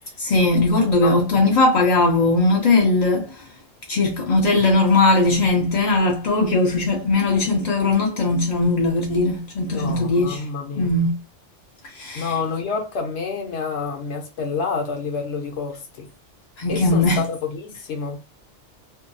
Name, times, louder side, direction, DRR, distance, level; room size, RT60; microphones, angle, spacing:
voice 1, 0.2-3.5 3.9-10.5 10.8-11.1 11.9-12.3 16.6-17.2, left 2 dB, 50° left, 0.5 m, -19 dB
voice 2, 1.0-1.4 9.7-10.9 12.1-16.1 16.7-18.2, left 5 dB, 70° left, 1.0 m, -28 dB
2.7 x 2.3 x 2.5 m
omnidirectional pair, 1.2 m